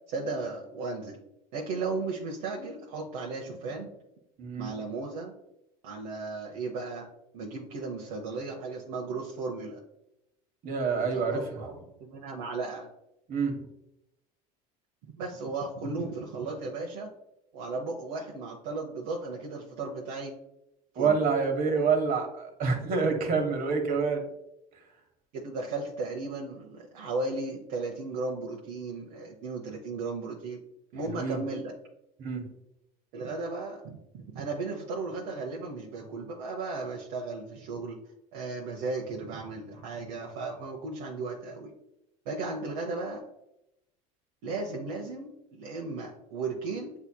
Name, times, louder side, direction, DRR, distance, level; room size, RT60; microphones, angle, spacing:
voice 1, 0.1-1.2 1.5-3.9 4.6-5.3 5.8-7.1 7.3-9.8 11.1-12.9 15.0-17.1 17.5-20.3 20.9-21.2 25.3-30.6 30.9-31.7 33.1-38.0 38.3-41.7 42.3-43.3 44.4-46.9, right 3 dB, 65° right, -1 dB, 0.8 m, -35 dB
voice 2, 4.4-4.8 10.6-11.4 13.3-13.6 21.0-24.2 31.0-31.4 32.2-32.4, right 5 dB, 50° right, 4 dB, 1.2 m, -27 dB
7.9 x 2.8 x 2.2 m, 0.86 s
hypercardioid pair, 90°, 19 cm